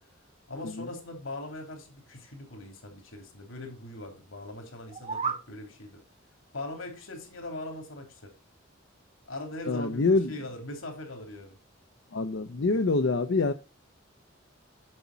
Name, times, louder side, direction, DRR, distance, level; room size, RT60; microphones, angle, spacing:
voice 1, 0.5-6.0 6.5-8.3 9.3-11.6, left 2 dB, 80° left, 2.9 m, -40 dB
sound 1, 4.8-5.5, right 5 dB, 30° right, 0.7 m, -32 dB
voice 2, 9.7-10.3 12.1-13.5, left 3 dB, 65° left, 0.6 m, -25 dB
7.8 x 7.2 x 4.0 m
head